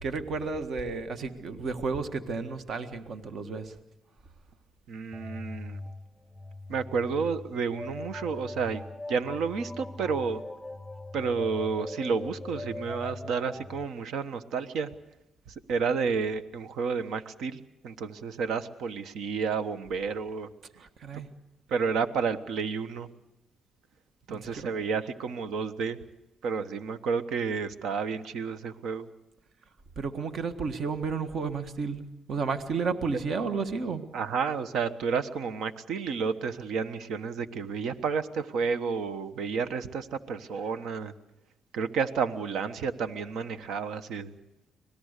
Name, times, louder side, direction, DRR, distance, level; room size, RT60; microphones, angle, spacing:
voice 1, 0.0-3.7 20.8-21.3 24.3-24.7 30.0-34.0, right 4 dB, 60° right, 8 dB, 1.6 m, -32 dB
voice 2, 4.9-5.8 6.7-8.8 9.1-10.4 11.1-14.9 15.5-20.5 21.7-23.1 24.3-26.0 26.4-29.1 34.1-41.1 41.7-44.3, right 5 dB, 80° right, 11 dB, 1.2 m, -31 dB
sound 1, 5.1-13.8, left 2 dB, 5° left, 0.7 m, -41 dB
25.0 x 19.0 x 6.7 m, 0.90 s
cardioid pair, 90°, 0 cm